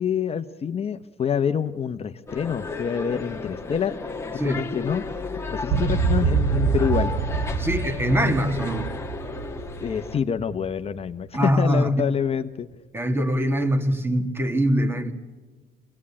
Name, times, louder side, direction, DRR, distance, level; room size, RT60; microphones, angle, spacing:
voice 1, 0.0-4.0 4.3-5.0 5.5-7.1 9.8-12.7, left 7 dB, 35° left, 8 dB, 0.9 m, -26 dB
sound 1, 2.3-10.2, left 4 dB, 15° left, 1.8 m, -34 dB
sound 2, 5.7-11.1, right 6 dB, 85° right, 3.2 m, -26 dB
voice 2, 7.6-8.9 11.3-11.9 12.9-15.1, equal, 15° right, 8 dB, 2.3 m, -23 dB
25.5 x 18.0 x 8.7 m, 1.4 s
cardioid pair, 110°, 17 cm